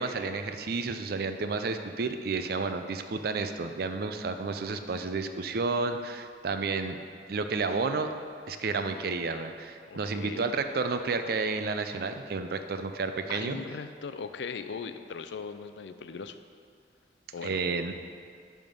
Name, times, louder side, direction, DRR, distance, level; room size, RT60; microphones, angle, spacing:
voice 1, 0.0-7.0 7.3-8.1 8.5-13.6 17.4-17.9, right 4 dB, 60° right, 8 dB, 0.5 m, -31 dB
voice 2, 9.9-10.5 13.3-16.4 17.3-17.6, left 5 dB, 80° left, 10 dB, 0.4 m, -39 dB
10.5 x 3.6 x 5.3 m, 2.2 s
head